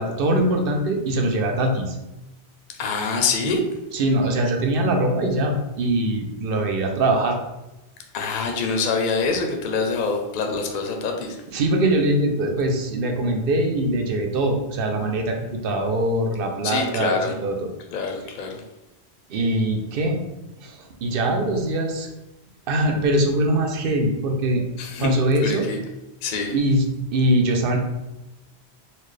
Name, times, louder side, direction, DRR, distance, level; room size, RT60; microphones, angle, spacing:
voice 1, 0.0-2.0 3.9-7.4 11.5-17.1 17.4-17.6 19.3-20.2 20.6-20.7 21.0-22.1 22.7-24.6 25.0-25.6 26.5-27.8, right 1 dB, 65° right, 3 dB, 0.7 m, -22 dB
voice 2, 2.8-3.6 8.1-11.4 16.6-17.4 17.9-18.6 24.8-25.1 25.4-25.8 26.2-26.6, left 4 dB, 60° left, 3 dB, 0.6 m, -25 dB
4.1 x 2.1 x 3.2 m, 0.97 s
omnidirectional pair, 1.1 m